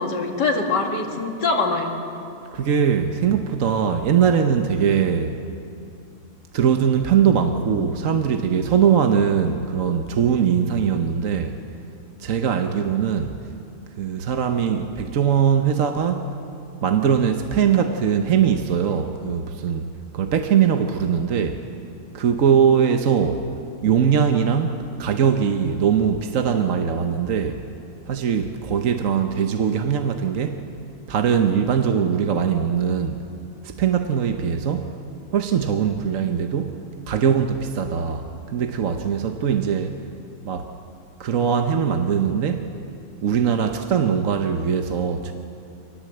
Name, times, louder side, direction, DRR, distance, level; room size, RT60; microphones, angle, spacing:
voice 1, 0.0-2.0, left 3 dB, 90° left, 2 dB, 2.7 m, -23 dB
voice 2, 2.5-5.4 6.5-11.6 12.2-13.5 14.0-16.3 16.8-19.9 20.1-21.6 22.1-23.5 23.8-27.6 28.1-30.6 31.1-33.2 33.6-35.0 35.3-36.8 37.1-40.0 40.4-40.7 41.2-42.7 43.2-45.3, right 7 dB, 55° right, 6 dB, 1.2 m, -21 dB
25.5 x 19.5 x 7.9 m, 2.6 s
omnidirectional pair, 1.8 m